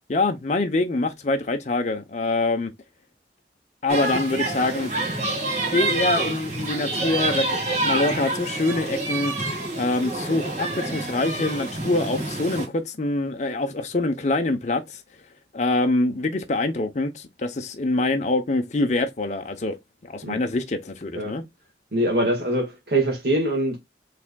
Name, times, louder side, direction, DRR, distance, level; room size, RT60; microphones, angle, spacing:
voice 1, 0.1-2.7 3.8-4.9 5.7-9.3 9.7-15.0 15.5-19.7 20.0-21.4, left 2 dB, 40° left, 0.6 m, -25 dB
sound 1, 3.9-12.7, right 2 dB, 40° right, 1.9 m, -27 dB
voice 2, 21.9-23.8, right 1 dB, 60° right, 1.6 m, -23 dB
6.0 x 3.4 x 2.2 m
head